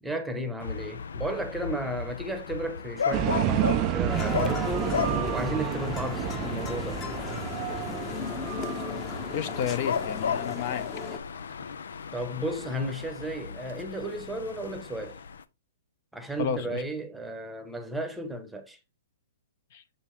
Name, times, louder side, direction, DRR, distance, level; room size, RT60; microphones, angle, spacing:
voice 1, 0.0-7.0 12.1-15.2 16.1-18.8, right 1 dB, 5° right, 1.0 m, -34 dB
sound 1, 0.6-15.4, left 6 dB, 80° left, 0.6 m, -35 dB
sound 2, 3.1-9.9, right 13 dB, 30° right, 0.4 m, -30 dB
sound 3, 4.1-11.2, left 4 dB, 20° left, 1.1 m, -37 dB
voice 2, 9.3-10.9 16.4-16.8 19.7-19.8, left 8 dB, 45° left, 1.0 m, -31 dB
7.1 x 5.4 x 3.3 m
hypercardioid pair, 155°, 0 cm